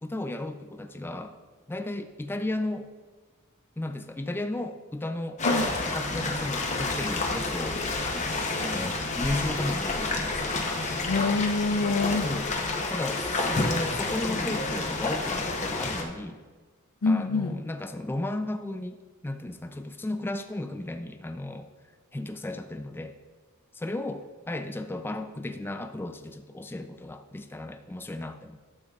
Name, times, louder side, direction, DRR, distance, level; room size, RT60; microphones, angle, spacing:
voice 1, 0.0-1.4 1.7-2.9 3.8-5.4 5.9-7.8 8.1-10.5 12.2-12.5 12.9-16.4 17.1-21.7 22.1-23.1 23.7-28.6, left 1 dB, 10° left, 6 dB, 0.3 m, -34 dB
sound 1, 5.4-16.0, left 3 dB, 35° left, 0.8 m, -29 dB
voice 2, 11.0-12.3 17.0-17.6, left 3 dB, 80° left, 6 dB, 0.6 m, -25 dB
12.0 x 6.5 x 2.4 m, 1.4 s
head